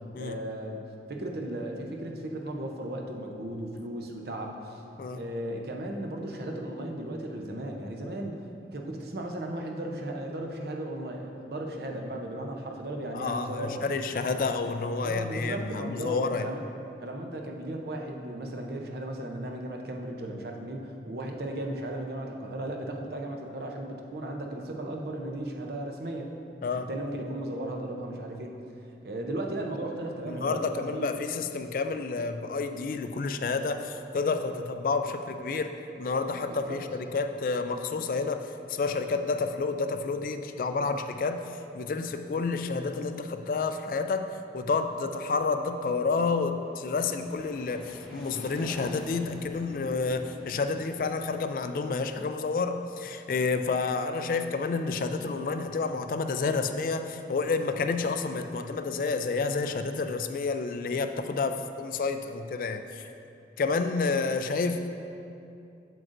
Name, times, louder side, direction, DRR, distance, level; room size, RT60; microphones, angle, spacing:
voice 1, 0.2-0.8 1.1-4.8 5.1-8.4 8.7-13.8 14.3-14.4 15.0-16.6 17.0-26.3 26.9-28.6 29.0-31.1 36.3-36.8, right 1 dB, 65° right, 2 dB, 0.7 m, -36 dB
voice 2, 13.1-16.5 26.6-26.9 30.3-41.4 41.7-44.3 44.5-63.0 63.6-64.9, left 4 dB, 50° left, 8 dB, 0.3 m, -30 dB
sound 1, 46.3-53.0, equal, ahead, 0.9 m, -46 dB
7.7 x 7.6 x 2.6 m, 2.6 s
head